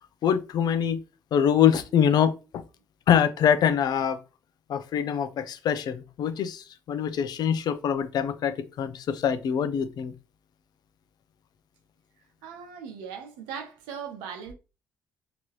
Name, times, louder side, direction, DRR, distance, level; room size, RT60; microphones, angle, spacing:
voice 1, 0.2-1.0 1.3-2.6 3.1-4.2 4.7-10.1, left 8 dB, 65° left, 0.6 m, -24 dB
voice 2, 12.4-14.5, right 7 dB, 90° right, 0.9 m, -39 dB
3.9 x 2.9 x 3.1 m
supercardioid pair, 65°, 8 cm